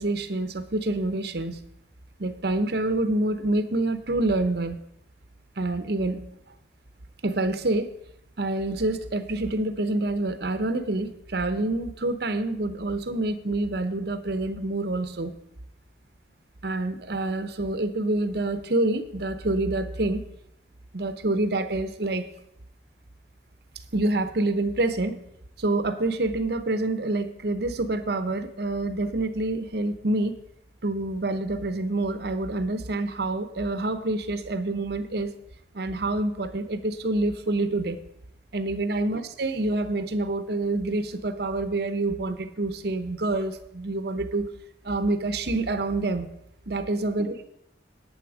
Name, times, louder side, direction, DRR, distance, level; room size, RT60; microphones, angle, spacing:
voice 1, 0.0-1.6 2.2-4.8 5.6-6.3 7.2-7.9 8.4-15.3 16.6-20.2 20.9-22.3 23.9-25.2 25.6-30.4 30.8-35.3 35.7-38.0 38.5-44.5 44.8-46.3 46.7-47.5, right 2 dB, 60° right, 11 dB, 0.9 m, -27 dB
10.5 x 8.8 x 4.9 m, 0.79 s
head